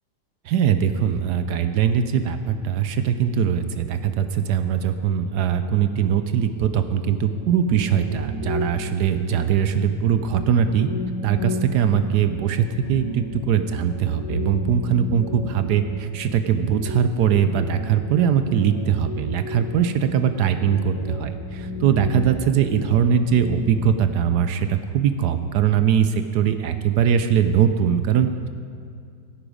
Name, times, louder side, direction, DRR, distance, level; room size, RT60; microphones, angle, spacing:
voice 1, 0.4-10.9 11.2-28.5, right 8 dB, 70° right, 9 dB, 1.1 m, -21 dB
sound 1, 6.7-23.8, left 2 dB, 25° left, 2.4 m, -34 dB
16.0 x 8.9 x 5.0 m, 2.3 s
omnidirectional pair, 2.0 m